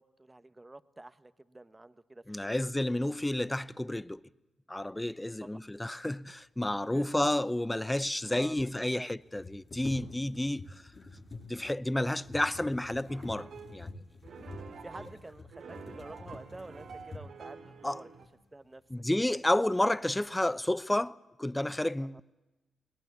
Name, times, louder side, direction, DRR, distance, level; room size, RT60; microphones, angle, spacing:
voice 1, 0.0-2.6 5.4-5.7 6.9-7.3 8.3-9.1 14.2-14.3 14.8-18.1 18.5-18.8 22.0-22.2, right 2 dB, 20° right, 1.2 m, -49 dB
voice 2, 2.3-4.2 4.7-10.8 11.5-14.0 17.8-18.0 18.9-22.2, left 1 dB, 15° left, 0.7 m, -31 dB
sound 1, 9.2-17.5 18.2-18.3 18.8-19.4 19.8-20.3, left 3 dB, 45° left, 8.0 m, -48 dB
sound 2, 13.1-13.8 14.2-18.3, right 5 dB, 70° right, 2.3 m, -48 dB
22.0 x 19.0 x 8.4 m
supercardioid pair, 50°, 0 cm